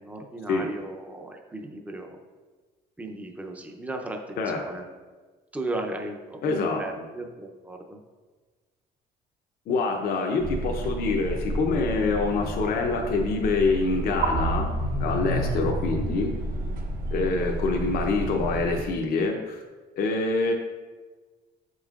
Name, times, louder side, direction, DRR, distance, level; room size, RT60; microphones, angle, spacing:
voice 1, 0.0-2.2 3.0-4.8 5.5-8.0 15.3-15.7, right 2 dB, 10° right, 3 dB, 0.6 m, -36 dB
voice 2, 6.4-6.8 9.7-14.7 15.0-16.3 17.1-19.6 20.0-20.5, left 3 dB, 60° left, 1 dB, 0.7 m, -25 dB
sound 1, 10.4-18.8, right 1 dB, 60° right, 1.0 m, -30 dB
7.2 x 5.4 x 2.4 m, 1.3 s
cardioid pair, 110°, 17 cm